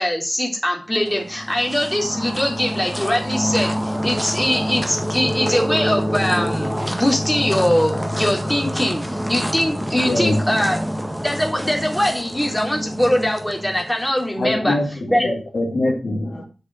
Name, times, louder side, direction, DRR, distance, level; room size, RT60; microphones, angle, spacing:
voice 1, 0.0-10.8 11.2-14.8 15.1-15.3, equal, 10° left, 3.4 m, -22 dB
sound 1, 1.0-14.3, equal, 5° right, 1.5 m, -26 dB
voice 2, 10.0-10.4 14.4-16.4, left 2 dB, 70° left, 3.1 m, -23 dB
8.0 x 6.6 x 6.3 m
wide cardioid pair, 60°, 0 cm